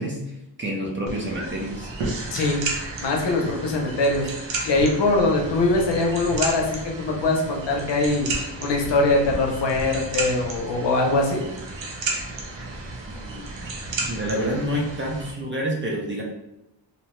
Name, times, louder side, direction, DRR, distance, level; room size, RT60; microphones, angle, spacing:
voice 1, 0.0-1.9 13.1-13.7 14.0-16.2, equal, 30° right, -2 dB, 0.4 m, -28 dB
sound 1, 1.1-15.3, right 3 dB, 80° right, 0.7 m, -32 dB
voice 2, 2.3-2.6 3.0-4.3 4.7-8.3 8.6-11.4, left 2 dB, 70° left, 0 dB, 0.7 m, -22 dB
2.7 x 2.1 x 2.9 m, 0.87 s
wide cardioid pair, 165°, 44 cm